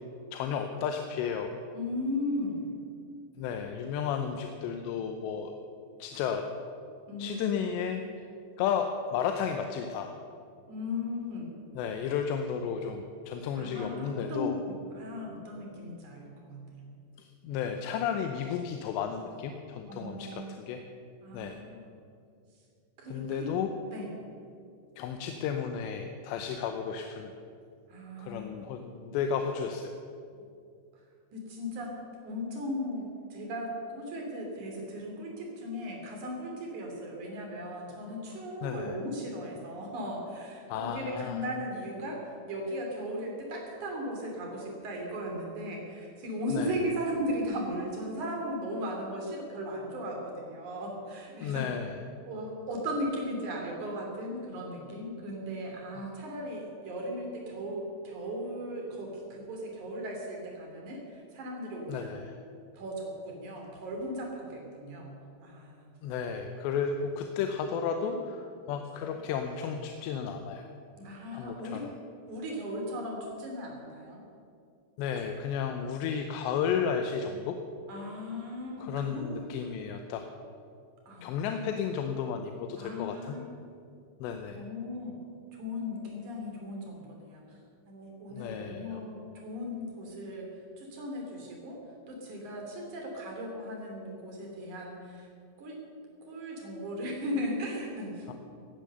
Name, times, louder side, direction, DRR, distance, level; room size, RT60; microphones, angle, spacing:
voice 1, 0.3-1.5 3.4-5.5 6.0-6.4 7.2-8.3 8.6-10.1 11.8-14.6 17.2-20.8 21.3-21.6 23.1-23.7 25.0-27.3 28.2-29.9 38.6-38.9 40.7-41.4 46.5-46.8 51.4-52.0 61.9-62.3 66.0-70.7 71.3-71.9 75.0-77.6 78.8-80.3 81.2-83.4 84.2-84.6 88.3-89.0 98.3-98.4, left 7 dB, 85° left, 5 dB, 3.0 m, -33 dB
voice 2, 1.7-2.7 7.1-7.5 10.7-11.5 13.6-16.9 19.9-20.4 21.2-21.8 23.0-23.5 23.9-24.1 27.9-28.5 31.3-31.9 32.2-42.2 42.5-51.7 52.3-62.1 62.7-65.9 68.2-68.3 71.0-71.9 72.3-74.2 77.9-79.4 81.1-81.3 82.8-83.4 84.5-85.2 85.5-87.6 87.9-91.8 92.1-95.3 95.6-95.8 96.2-98.3, equal, 45° right, 0 dB, 4.0 m, -37 dB
17.5 x 10.0 x 6.8 m, 2.4 s
omnidirectional pair, 5.0 m